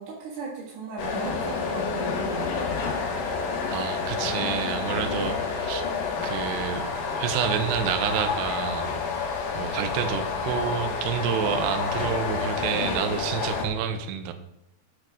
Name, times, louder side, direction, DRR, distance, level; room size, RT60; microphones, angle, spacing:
voice 1, 0.0-2.6 4.8-5.1, right 3 dB, 60° right, -6 dB, 3.3 m, -37 dB
sound 1, 1.0-13.7, left 5 dB, 75° left, 1.9 m, -29 dB
voice 2, 3.7-5.9 6.2-6.9 7.2-8.9 9.5-14.3, right 8 dB, 80° right, 7 dB, 2.4 m, -28 dB
8.2 x 6.5 x 6.1 m, 0.83 s
omnidirectional pair, 5.7 m